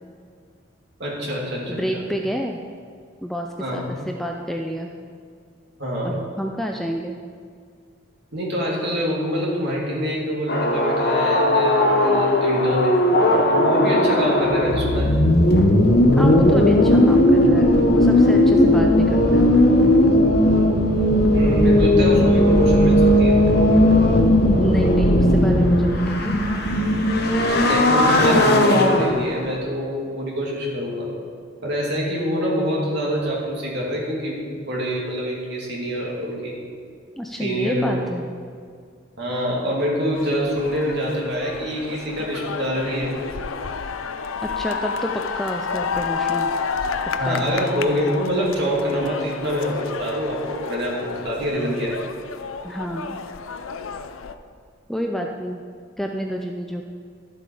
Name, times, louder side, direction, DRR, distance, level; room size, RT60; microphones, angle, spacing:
voice 1, 1.0-2.0 3.6-3.9 5.8-6.2 8.3-13.0 13.5-15.1 21.3-23.4 27.6-31.1 31.6-36.5 37.4-38.0 39.2-43.1 47.2-52.0, equal, 55° right, -4 dB, 2.7 m, -25 dB
voice 2, 1.7-2.6 3.2-4.9 6.0-7.2 16.1-19.5 24.6-26.3 37.2-38.3 44.6-46.5 47.2-47.5 52.6-53.2 54.9-55.6 56.0-56.8, equal, ahead, 2 dB, 0.4 m, -28 dB
sound 1, 10.5-29.6, left 1 dB, 50° left, 1.0 m, -17 dB
sound 2, 40.1-54.4, left 5 dB, 80° left, 0.5 m, -30 dB
12.5 x 7.7 x 4.9 m, 2.2 s
head